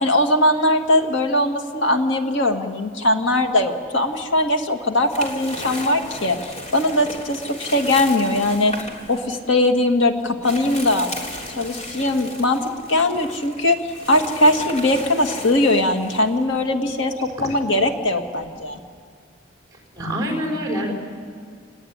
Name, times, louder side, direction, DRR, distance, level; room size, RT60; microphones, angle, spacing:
voice 1, 0.0-6.4 6.7-8.7 9.1-11.1 11.6-12.6 12.9-18.8, left 1 dB, 85° left, 4 dB, 2.2 m, -20 dB
sound 1, 3.9-4.3 4.7-18.9, left 1 dB, 40° left, 3.7 m, -36 dB
voice 2, 19.9-20.9, equal, 20° right, 0 dB, 5.9 m, -25 dB
28.5 x 20.5 x 9.8 m, 2.2 s
head